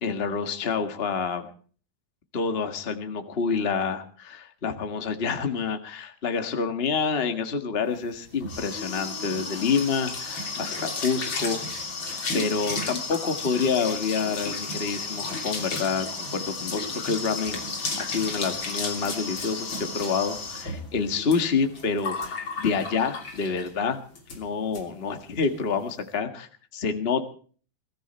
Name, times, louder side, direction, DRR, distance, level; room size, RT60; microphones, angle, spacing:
voice 1, 0.0-1.5 2.3-11.9 12.3-17.6 18.0-24.0 24.3-27.3, left 5 dB, 65° left, 7 dB, 0.5 m, -28 dB
sound 1, 8.0-23.8 24.2-24.4 24.7-24.8 25.1-25.5, left 3 dB, 35° left, 3.4 m, -33 dB
22.0 x 14.0 x 4.4 m, 0.43 s
omnidirectional pair, 4.1 m